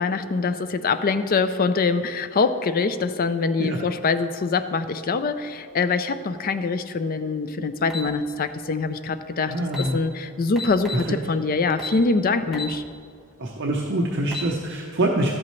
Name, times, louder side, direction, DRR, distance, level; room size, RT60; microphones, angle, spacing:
voice 1, 0.0-12.8, left 4 dB, 40° left, 11 dB, 0.4 m, -24 dB
sound 1, 7.9-8.1 9.3-9.4 9.7-9.9 10.6-11.1 11.8-12.0 12.5-12.8 13.2-13.3 14.1-14.5, left 2 dB, ahead, 1.2 m, -32 dB
voice 2, 9.5-10.0 11.1-11.2 13.4-15.3, right 1 dB, 55° right, -1 dB, 0.8 m, -25 dB
13.0 x 8.6 x 3.1 m, 2.2 s
head